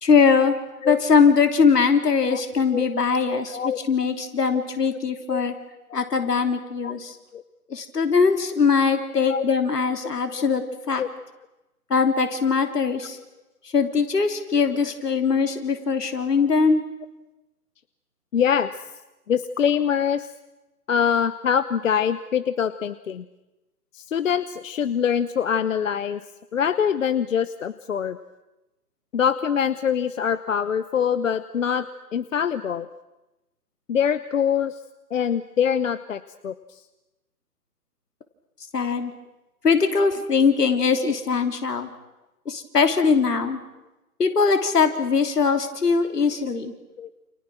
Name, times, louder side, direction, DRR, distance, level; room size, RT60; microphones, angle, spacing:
voice 1, 0.0-0.6 0.8-5.5 5.9-7.1 7.7-11.0 11.9-13.2 13.7-16.8 38.7-39.1 39.6-41.9 42.4-43.6 44.2-46.7, left 5 dB, 75° left, 7 dB, 3.4 m, -21 dB
voice 2, 3.3-3.8 4.5-4.6 5.3-5.4 6.8-6.9 7.3-7.4 9.2-9.4 10.3-10.4 11.0-11.1 18.3-18.7 19.3-20.3 20.9-23.2 23.9-26.2 26.5-28.2 29.1-31.9 32.1-32.9 33.9-34.8 35.1-36.5 47.0-47.1, left 8 dB, 55° left, 13 dB, 1.1 m, -24 dB
29.5 x 28.0 x 6.3 m, 1.0 s
figure-of-eight pair, 145°, 48 cm